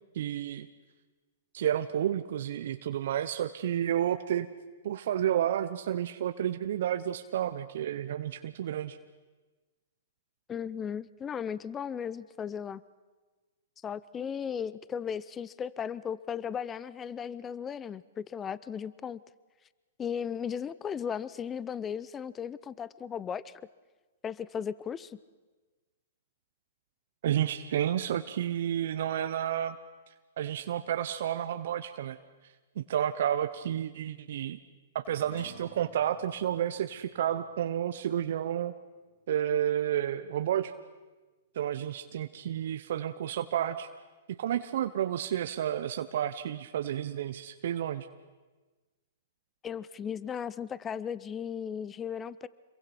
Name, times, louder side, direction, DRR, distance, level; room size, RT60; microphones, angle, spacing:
voice 1, 0.1-0.7 1.5-4.5 4.8-9.0 27.2-29.8 30.4-32.2 32.8-34.6 34.9-38.7 39.3-40.7 41.5-43.9 44.3-48.1, right 10 dB, 65° right, 10 dB, 0.8 m, -31 dB
voice 2, 10.5-12.8 13.8-19.2 20.0-23.5 24.2-25.2 49.6-52.5, left 7 dB, 20° left, 19 dB, 0.6 m, -36 dB
sound 1, 35.0-39.7, equal, 70° left, 4.6 m, -55 dB
26.5 x 23.0 x 6.0 m, 1.3 s
hypercardioid pair, 125°, 0 cm